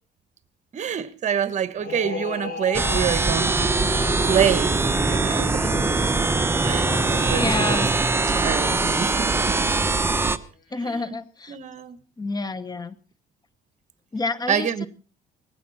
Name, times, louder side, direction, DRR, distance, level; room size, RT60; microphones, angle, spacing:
voice 1, 0.7-3.7 4.2-4.8 5.0-5.8 6.6-7.9 8.3-9.7 10.8-11.2 11.5-12.0 14.5-14.9, right 8 dB, 45° right, 1.5 m, -27 dB
sound 1, 1.8-10.3, left 5 dB, 65° left, 6.2 m, -38 dB
sound 2, 2.7-10.4, right 3 dB, 15° right, 1.0 m, -22 dB
voice 2, 7.3-7.9 10.7-11.6 12.2-13.0 14.1-14.9, left 3 dB, 25° left, 1.0 m, -29 dB
19.0 x 16.0 x 4.3 m
cardioid pair, 110°, 17 cm